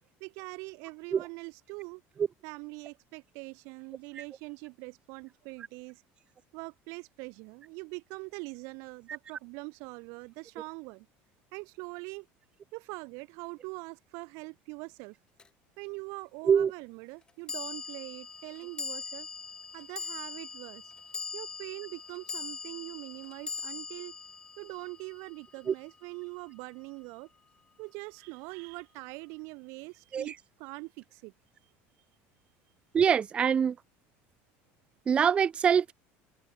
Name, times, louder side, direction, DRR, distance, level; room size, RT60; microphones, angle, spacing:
voice 1, 0.2-2.0 2.4-6.0 6.5-11.1 11.5-12.3 12.7-15.2 15.8-19.3 19.7-20.8 21.3-24.1 24.6-27.3 27.8-31.3, right 30 dB, 65° right, 3.4 m, -43 dB
sound 1, 15.4-15.5 17.5-25.9, left 5 dB, 15° left, 1.5 m, -41 dB
voice 2, 32.9-33.8 35.1-35.9, right 7 dB, 20° right, 0.3 m, -24 dB
cardioid pair, 165°, 5 cm